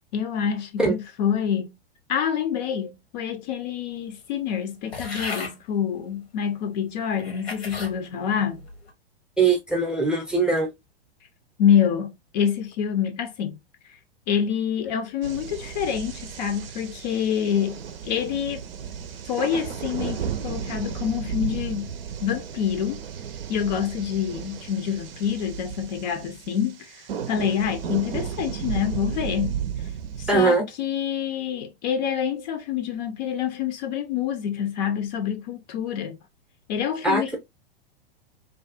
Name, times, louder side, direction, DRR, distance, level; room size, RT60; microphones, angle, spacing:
voice 1, 0.1-1.7 2.1-8.7 11.6-13.6 14.3-18.6 19.3-21.9 22.2-23.0 23.5-26.8 27.3-29.6 30.2-36.2 36.7-37.4, left 8 dB, 45° left, 0.5 m, -26 dB
sound 1, 4.9-5.6 6.4-6.5 7.1-8.0 8.5-8.9, left 3 dB, 85° left, 1.0 m, -35 dB
voice 2, 9.4-10.7 30.3-30.7 37.0-37.4, right 4 dB, 5° right, 0.5 m, -21 dB
sound 2, 15.2-30.5, right 8 dB, 70° right, 0.5 m, -34 dB
2.4 x 2.2 x 2.4 m
hypercardioid pair, 105°, 30 cm